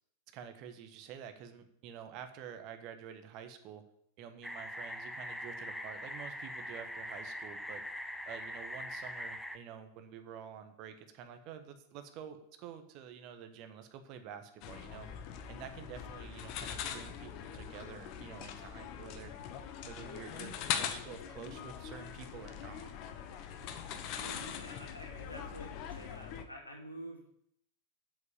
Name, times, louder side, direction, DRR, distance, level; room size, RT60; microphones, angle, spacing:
voice 1, 0.3-3.8 4.2-7.8 8.3-15.1 15.5-19.3 19.9-22.9, right 8 dB, 40° right, 8 dB, 1.3 m, -49 dB
sound 1, 4.4-9.6, equal, ahead, 0.7 m, -42 dB
sound 2, 14.6-26.4, left 8 dB, 40° left, 1.0 m, -42 dB
voice 2, 24.2-27.2, equal, 80° left, 0 dB, 2.6 m, -48 dB
8.0 x 7.6 x 7.3 m, 0.71 s
figure-of-eight pair, 90°, 0 cm